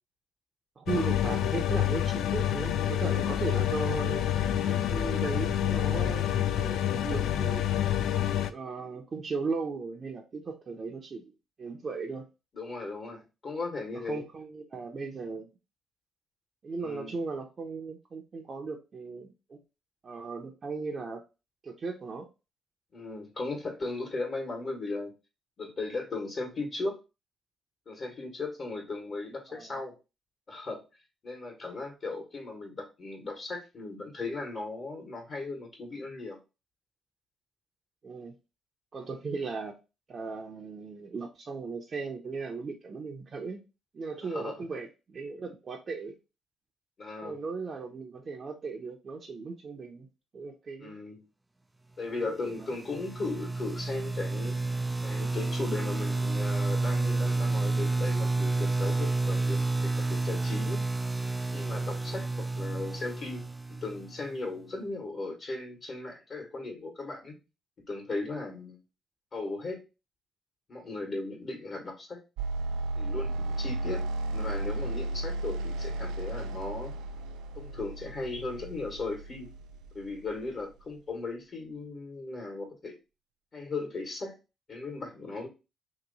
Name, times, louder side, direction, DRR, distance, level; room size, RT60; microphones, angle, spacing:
voice 1, 0.8-4.3 4.7-6.2 6.5-7.6 8.5-11.3 11.6-12.3 13.9-15.5 16.6-19.6 20.0-21.2 21.6-22.3 29.5-29.7 38.0-38.3 38.9-39.7 40.1-43.6 43.9-46.2 47.2-50.1 50.3-51.0 52.1-52.7, right 4 dB, 40° right, -1 dB, 0.7 m, -37 dB
sound 1, 0.9-8.5, left 11 dB, 80° left, 0.3 m, -28 dB
voice 2, 4.6-4.9 12.5-14.2 16.8-17.2 22.9-25.1 25.6-27.0 27.9-29.9 30.5-30.8 31.2-36.4 44.2-44.6 47.0-47.4 50.8-51.2 52.0-54.6 55.0-60.9 61.5-63.5 63.8-67.4 67.8-68.8 69.3-69.8 70.7-72.2 73.0-76.9 77.5-79.5 79.9-83.0 83.5-84.4 84.7-85.5, left 3 dB, 45° left, 0 dB, 1.4 m, -37 dB
sound 2, 52.5-64.3, right 3 dB, 15° right, 0.3 m, -30 dB
sound 3, 72.4-80.5, right 2 dB, 90° right, 0.4 m, -34 dB
3.0 x 2.9 x 4.0 m, 0.28 s
cardioid pair, 90°, 0 cm